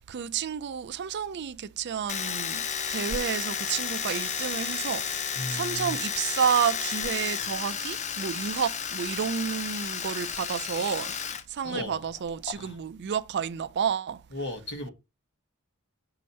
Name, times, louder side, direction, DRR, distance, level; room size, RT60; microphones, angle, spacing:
voice 1, 0.1-5.1 5.5-11.1 11.5-14.2, right 7 dB, 50° right, 0.4 m, -30 dB
Domestic sounds home sounds, 2.1-11.4 11.7-12.5, left 7 dB, 35° left, 0.5 m, -32 dB
voice 2, 5.3-6.0 11.6-12.1 12.5-12.8 14.3-14.9, left 1 dB, 55° left, 1.5 m, -36 dB
6.3 x 2.9 x 5.2 m
head